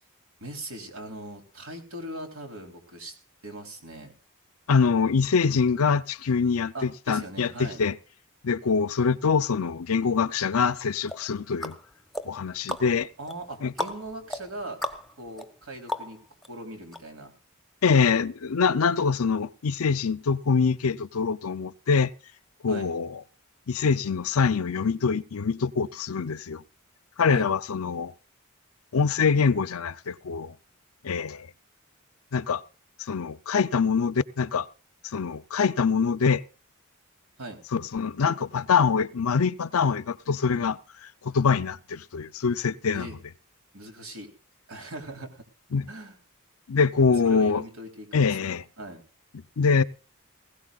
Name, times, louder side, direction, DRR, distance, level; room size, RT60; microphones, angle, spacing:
voice 1, 0.4-3.1 3.4-4.1 6.7-7.8 13.2-14.8 15.2-16.2 16.5-17.3 22.7-22.9 27.3-27.5 37.4-37.6 42.9-43.1 43.7-44.3 44.7-45.4 45.9-46.2 47.2-49.0, right 1 dB, 75° right, 3.6 m, -40 dB
voice 2, 4.7-8.0 8.4-11.8 12.2-13.1 13.6-13.7 17.8-22.1 22.6-23.2 23.7-26.6 27.2-28.1 28.9-30.5 31.0-31.5 32.3-32.6 33.1-34.7 35.1-36.4 37.7-40.8 41.2-43.1 45.7-45.9 46.7-47.6 48.1-48.6 49.6-49.8, left 5 dB, 85° left, 0.6 m, -24 dB
sound 1, 11.1-16.5 16.9-17.0, equal, ahead, 1.1 m, -37 dB
20.0 x 17.0 x 2.4 m
head